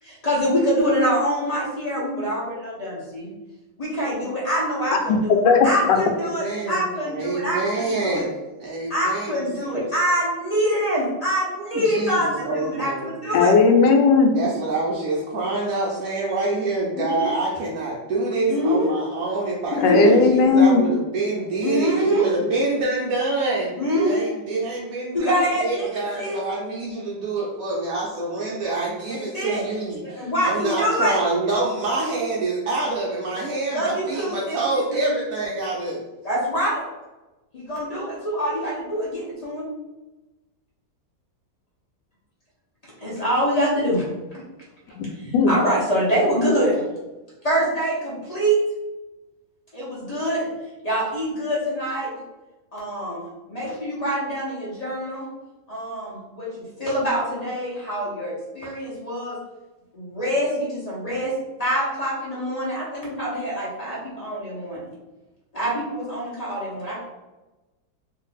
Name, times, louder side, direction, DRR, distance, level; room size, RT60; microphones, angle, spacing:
voice 1, 0.0-3.3 3.8-8.2 8.9-13.5 16.9-17.3 18.5-18.9 19.8-20.1 21.6-22.3 23.7-24.3 25.1-25.9 26.2-26.4 29.1-29.7 30.0-31.2 33.7-34.6 34.9-35.0 36.2-36.8 37.5-39.7 43.0-44.4 45.1-46.8 47.4-48.6 49.7-50.5 50.8-52.1 52.7-55.3 55.7-59.4 59.9-61.3 61.6-64.8 65.5-67.0, equal, 40° left, -7 dB, 0.6 m, -25 dB
voice 2, 5.3-5.7 13.3-14.3 19.7-20.8 45.0-45.1 45.3-45.5, left 5 dB, 75° left, 3 dB, 1.2 m, -16 dB
voice 3, 6.1-8.3 8.6-9.9 11.7-13.1 14.3-36.0, right 3 dB, 75° right, -4 dB, 0.7 m, -26 dB
2.8 x 2.6 x 3.9 m, 1.1 s
omnidirectional pair, 2.0 m